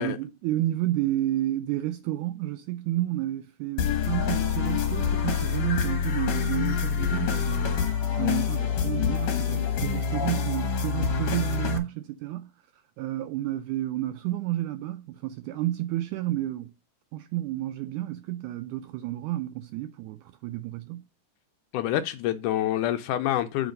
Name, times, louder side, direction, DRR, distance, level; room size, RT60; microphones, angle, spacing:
voice 1, 0.0-7.9 8.2-12.5 13.0-16.7 17.1-21.1, right 14 dB, 80° right, 1.8 m, -31 dB
sound 1, 3.8-11.8, left 6 dB, 60° left, 2.1 m, -26 dB
voice 2, 21.7-23.7, left 12 dB, 75° left, 2.0 m, -27 dB
7.9 x 4.8 x 5.2 m
omnidirectional pair, 4.0 m